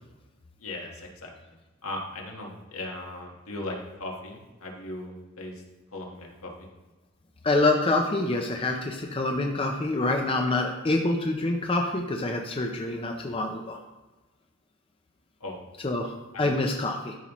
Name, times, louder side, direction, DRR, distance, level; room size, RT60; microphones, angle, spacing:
voice 1, 0.6-1.3 1.8-5.6 5.9-6.7 15.4-15.6 16.3-16.5, left 2 dB, 75° left, 0 dB, 1.5 m, -38 dB
voice 2, 7.4-13.8 15.8-17.2, left 2 dB, 25° left, 2 dB, 0.6 m, -26 dB
12.5 x 5.5 x 3.1 m, 1.1 s
head